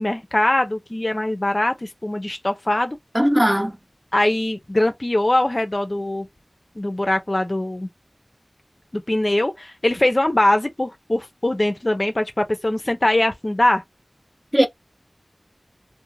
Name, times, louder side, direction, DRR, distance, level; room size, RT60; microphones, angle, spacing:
voice 1, 0.0-3.0 4.1-6.3 6.8-7.9 8.9-13.8, left 1 dB, 40° left, 0.4 m, -22 dB
voice 2, 3.1-3.7 14.5-14.7, equal, 10° right, 0.6 m, -17 dB
2.4 x 2.0 x 3.0 m
wide cardioid pair, 55°, 0 cm